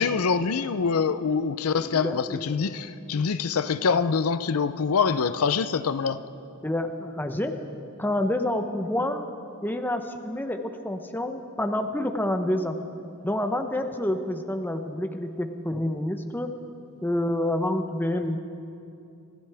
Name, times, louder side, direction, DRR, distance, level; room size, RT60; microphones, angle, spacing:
voice 1, 0.0-6.2, left 5 dB, 80° left, 12 dB, 0.5 m, -25 dB
voice 2, 1.8-2.4 6.6-7.6 8.0-9.2 9.6-12.8 13.2-16.5 17.0-18.4, left 1 dB, 10° left, 6 dB, 0.7 m, -28 dB
25.5 x 15.0 x 3.4 m, 2.6 s
head